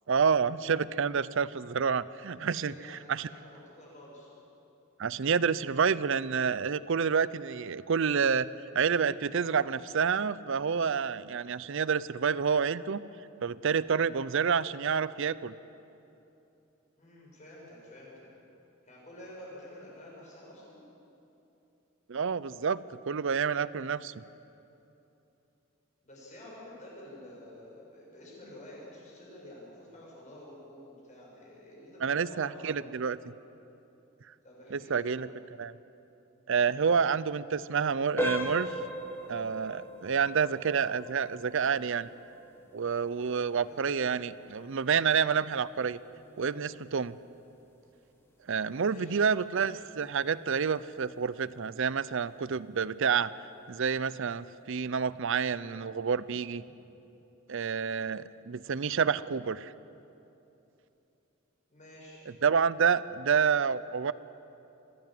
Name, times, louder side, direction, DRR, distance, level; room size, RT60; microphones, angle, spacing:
voice 1, 0.1-3.3 5.0-8.5 8.7-13.0 13.4-15.5 22.1-22.8 23.1-24.1 32.0-33.2 34.7-35.3 35.6-35.7 36.5-38.7 39.3-42.1 42.7-46.0 46.4-47.2 48.5-53.3 53.7-56.6 57.5-59.7 62.4-64.1, right 6 dB, 60° right, 18 dB, 0.5 m, -28 dB
voice 2, 2.4-4.3 17.0-18.3 18.8-20.8 26.0-33.0 34.4-35.2 43.5-43.8 48.8-49.2 61.7-62.3, left 1 dB, 35° left, -4 dB, 7.0 m, -49 dB
sound 1, 38.2-48.8 49.2-49.4 50.0-50.1 50.6-50.8, equal, 10° left, 1.7 m, -40 dB
24.0 x 16.0 x 7.7 m, 2.9 s
head